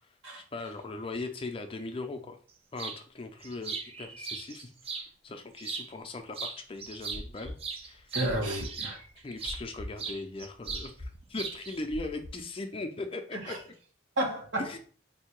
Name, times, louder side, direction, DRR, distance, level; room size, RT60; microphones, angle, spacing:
voice 1, 0.4-2.4 2.7-7.6 7.8-8.1 9.2-13.7 14.6-14.8, left 2 dB, 30° left, 5 dB, 0.4 m, -39 dB
sound 1, 2.8-3.0 3.4-5.1 5.6-6.1 6.3-9.6 10.0-10.9 11.1-11.8, right 5 dB, 30° right, 0.5 m, -38 dB
sound 2, 6.8-10.1 10.4-12.3, left 1 dB, 55° right, 1.5 m, -42 dB
voice 2, 8.1-9.0 13.3-13.6 14.2-14.8, right 1 dB, 75° right, 0 dB, 1.5 m, -32 dB
3.6 x 2.7 x 4.5 m, 0.42 s
head